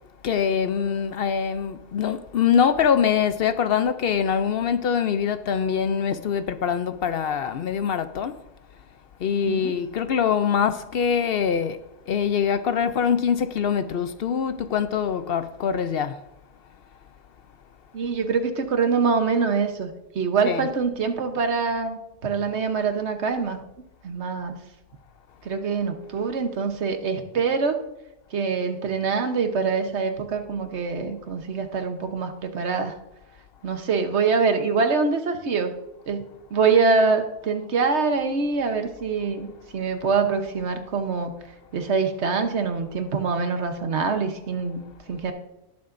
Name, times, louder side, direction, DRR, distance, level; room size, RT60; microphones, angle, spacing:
voice 1, 0.2-8.4 9.2-16.2 20.4-20.7, left 7 dB, 65° left, 0.7 m, -24 dB
voice 2, 9.4-9.7 17.9-23.6 24.0-24.6 25.4-27.8 28.3-32.9 33.6-35.7 36.1-36.2 36.5-41.3 41.7-45.3, right 5 dB, 75° right, 1.3 m, -24 dB
19.5 x 7.1 x 2.6 m
omnidirectional pair, 1.2 m